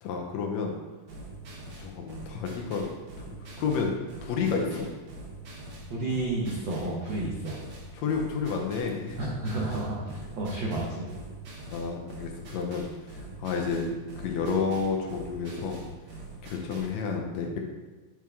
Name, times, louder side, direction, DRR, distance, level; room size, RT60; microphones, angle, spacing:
voice 1, 0.0-0.8 1.8-2.8 3.6-3.9 4.2-4.9 7.9-9.2 11.7-12.9 13.4-15.8 16.4-17.6, left 5 dB, 75° left, 1 dB, 1.8 m, -30 dB
sound 1, 1.1-17.0, right 2 dB, 55° right, 1.3 m, -44 dB
voice 2, 5.9-7.6 9.2-11.1, right 2 dB, 90° right, -4 dB, 1.0 m, -31 dB
7.3 x 4.5 x 3.5 m, 1.3 s
omnidirectional pair, 3.4 m